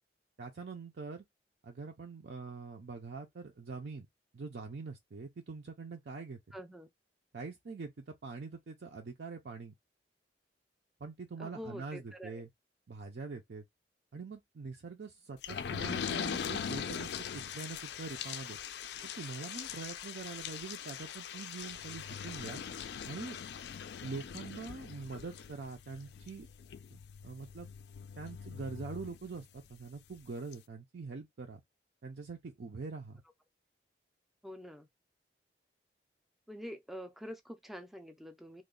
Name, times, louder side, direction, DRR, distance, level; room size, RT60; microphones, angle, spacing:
voice 1, 0.4-1.2 1.6-4.1 4.3-6.6 7.3-9.7 11.0-12.5 12.9-13.6 14.1-18.6 19.0-22.6 23.0-23.4 24.0-26.5 26.9-27.7 28.2-31.6 32.0-33.2, right 4 dB, 65° right, 0.5 m, -44 dB
voice 2, 6.5-6.9 11.4-12.4 34.4-34.9 36.5-38.6, equal, ahead, 0.4 m, -46 dB
sound 1, 15.4-29.7 30.2-30.3 30.5-30.6, left 7 dB, 65° left, 0.3 m, -41 dB
3.1 x 2.2 x 3.7 m
head